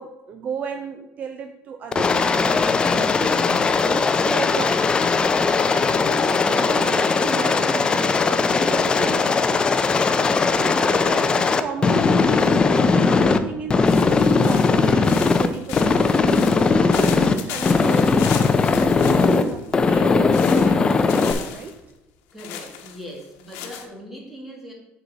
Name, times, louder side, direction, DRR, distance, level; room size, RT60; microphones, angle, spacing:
voice 1, 0.0-21.7, right 6 dB, 40° right, 7 dB, 0.5 m, -35 dB
Aircraft, 1.9-13.4 13.7-15.5 15.7-17.3 17.6-19.4 19.7-21.3, left 4 dB, 20° left, 0.4 m, -19 dB
sound 1, 13.8-19.7 20.3-21.7 22.4-23.9, left 9 dB, 90° left, 1.0 m, -36 dB
voice 2, 22.3-24.7, equal, 5° right, -1 dB, 1.9 m, -39 dB
6.8 x 6.1 x 4.0 m, 1.0 s
cardioid pair, 155°, 4 cm